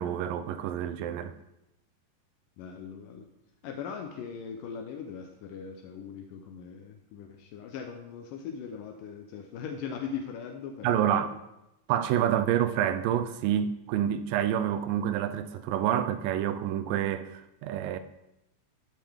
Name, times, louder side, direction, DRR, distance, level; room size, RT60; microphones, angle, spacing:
voice 1, 0.0-1.3 10.8-11.3 11.9-18.0, right 10 dB, 85° right, 2.3 m, -28 dB
voice 2, 2.6-3.3 3.6-11.4 12.4-12.5, left 7 dB, 80° left, 2.3 m, -40 dB
11.5 x 7.5 x 3.5 m
omnidirectional pair, 3.9 m